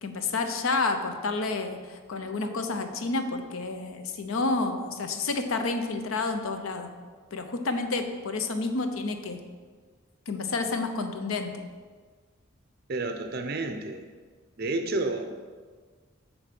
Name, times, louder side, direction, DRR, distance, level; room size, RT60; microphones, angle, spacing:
voice 1, 0.0-6.9 7.3-9.4 10.3-11.6, left 3 dB, 85° left, 7 dB, 0.7 m, -30 dB
voice 2, 12.9-14.0 14.6-15.2, right 2 dB, 50° right, 6 dB, 0.6 m, -30 dB
6.8 x 4.1 x 5.9 m, 1.5 s
head